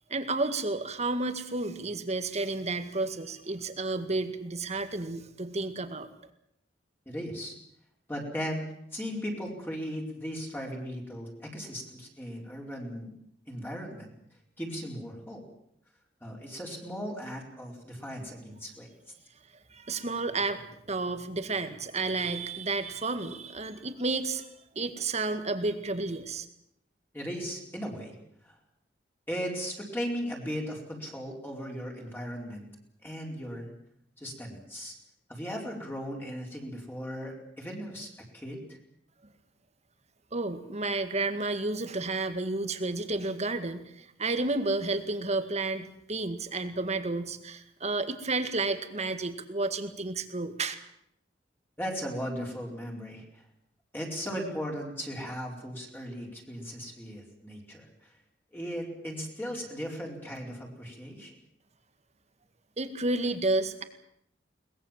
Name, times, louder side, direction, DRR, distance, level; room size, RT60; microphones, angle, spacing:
voice 1, 0.1-6.1 19.7-24.5 24.8-26.5 40.3-50.8 62.8-63.8, right 3 dB, 40° right, 9 dB, 2.0 m, -31 dB
voice 2, 7.1-7.5 8.1-8.7 8.9-13.1 13.5-14.1 14.6-15.4 16.2-18.9 22.2-22.4 27.1-28.1 28.4-28.6 29.3-32.6 33.0-33.7 34.2-34.9 35.3-38.1 38.3-38.6 51.8-53.4 53.9-58.1 58.5-61.3, equal, 10° left, -1 dB, 4.5 m, -37 dB
22.5 x 20.0 x 7.5 m, 0.75 s
head